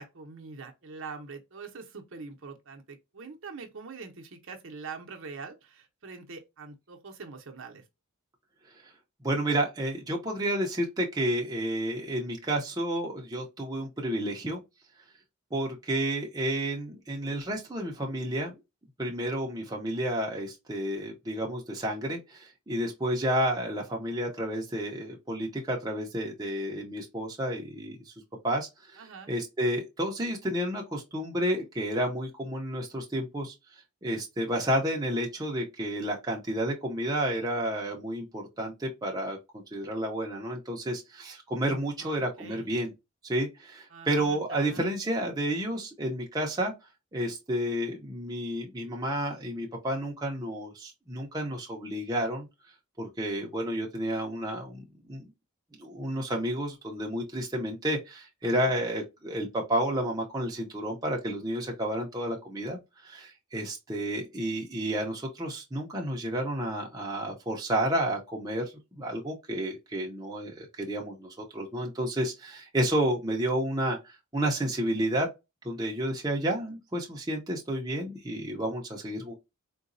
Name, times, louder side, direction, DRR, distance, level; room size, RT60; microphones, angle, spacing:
voice 1, 0.0-7.8 29.0-29.3 42.0-42.7 43.9-44.9 58.4-58.8, right 4 dB, 55° right, 0.7 m, -44 dB
voice 2, 9.2-14.6 15.5-18.5 19.0-28.1 28.4-33.5 34.0-42.9 43.2-46.7 47.1-52.5 53.0-55.3 55.8-68.6 68.9-75.3 75.6-79.4, right 1 dB, 15° right, 0.6 m, -31 dB
3.9 x 2.2 x 2.5 m
head